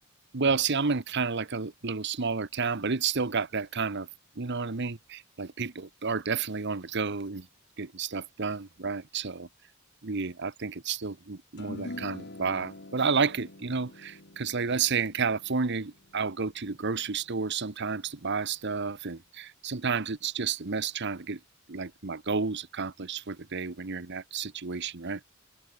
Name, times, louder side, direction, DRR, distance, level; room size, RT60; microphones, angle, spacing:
voice 1, 0.3-4.1 4.4-7.5 7.8-9.5 10.0-21.4 21.7-25.2, right 5 dB, 60° right, 1.1 m, -31 dB
sound 1, 11.6-18.1, left 1 dB, 55° left, 2.8 m, -46 dB
head